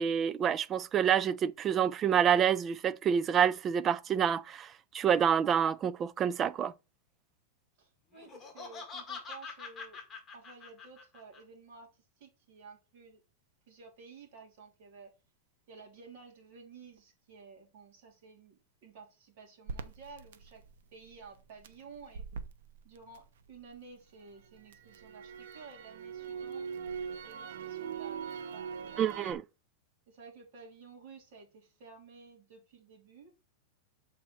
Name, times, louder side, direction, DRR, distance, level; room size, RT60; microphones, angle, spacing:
voice 1, 0.0-6.7 29.0-29.4, right 8 dB, 20° right, 0.3 m, -28 dB
voice 2, 7.8-10.0 10.3-13.2 13.7-15.1 15.7-20.6 20.9-22.2 22.8-26.6 27.2-29.3 30.1-33.3, right 4 dB, 50° right, 3.0 m, -53 dB
Laughter, 8.1-11.4, left 5 dB, 10° left, 1.6 m, -44 dB
Crackle, 19.7-23.8 24.2-29.3, right 6 dB, 85° right, 0.8 m, -42 dB
7.3 x 4.3 x 4.5 m
supercardioid pair, 170°, 0 cm